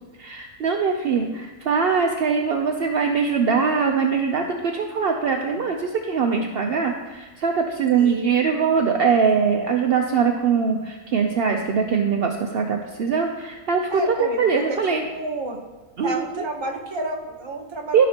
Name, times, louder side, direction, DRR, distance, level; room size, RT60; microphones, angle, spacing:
voice 1, 0.2-15.0 16.0-16.4 17.9-18.1, right 5 dB, 70° right, 3 dB, 0.5 m, -22 dB
voice 2, 7.9-8.4 13.9-15.6 16.0-18.1, right 2 dB, 25° right, 1 dB, 0.7 m, -30 dB
14.5 x 5.1 x 2.8 m, 1.2 s
omnidirectional pair, 1.6 m